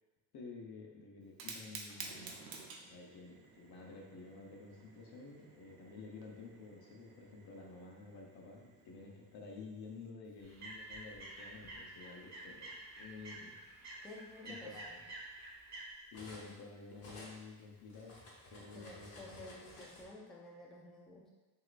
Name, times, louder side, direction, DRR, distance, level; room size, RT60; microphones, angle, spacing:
voice 1, 0.3-2.3 2.9-13.6 14.4-14.9 16.1-18.2 18.5-19.2, left 4 dB, 70° left, -1 dB, 0.9 m, -51 dB
Fire, 1.2-10.1, right 4 dB, 65° right, 0.7 m, -53 dB
sound 1, 10.4-15.8, right 2 dB, 45° right, 1.2 m, -49 dB
Cutlery silverware, 10.5-11.8 12.8-12.9 13.4-16.6 16.9-20.0, left 1 dB, 40° left, 0.9 m, -55 dB
voice 2, 14.0-15.0 18.7-21.3, left 2 dB, ahead, -4 dB, 0.4 m, -52 dB
6.2 x 2.9 x 2.5 m, 1.3 s
cardioid pair, 170°, 40 cm